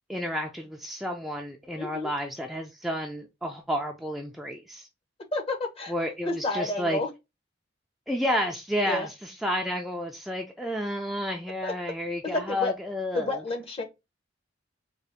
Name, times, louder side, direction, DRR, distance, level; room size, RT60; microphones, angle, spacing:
voice 1, 0.1-4.9 5.9-7.0 8.1-13.4, equal, ahead, 0.3 m, -31 dB
voice 2, 1.8-2.1 5.3-5.9 6.2-7.1 8.9-9.1 11.6-11.7 12.3-12.7 13.1-13.8, left 2 dB, 30° left, 0.8 m, -30 dB
3.8 x 2.4 x 3.4 m
head